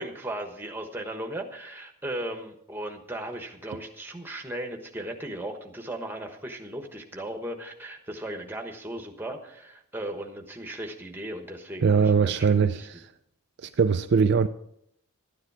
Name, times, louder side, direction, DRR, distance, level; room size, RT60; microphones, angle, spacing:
voice 1, 0.0-12.9, right 1 dB, 10° right, 1.2 m, -37 dB
voice 2, 11.8-12.9 13.6-14.5, right 5 dB, 50° right, 0.4 m, -21 dB
12.5 x 9.8 x 4.8 m
head